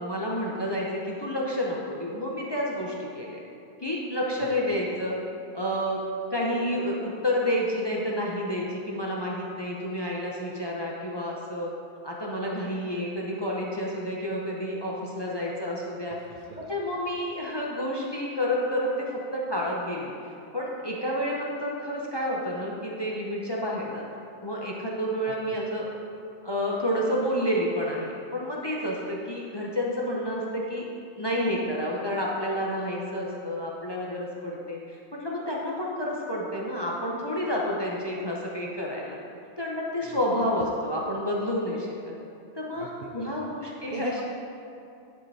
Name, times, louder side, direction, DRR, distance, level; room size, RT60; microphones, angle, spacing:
voice 1, 0.0-3.4 3.8-5.2 5.5-6.0 6.3-11.7 12.0-16.2 16.6-24.0 24.4-25.8 26.4-30.9 31.2-39.2 39.6-42.1 42.5-44.2, equal, 30° left, -3 dB, 0.5 m, -30 dB
voice 2, 16.1-16.7 25.2-25.4 25.6-25.7 40.0-40.2 42.7-43.5 43.9-44.2, right 5 dB, 75° right, 2 dB, 0.4 m, -41 dB
9.9 x 4.4 x 4.1 m, 2.6 s
omnidirectional pair, 1.4 m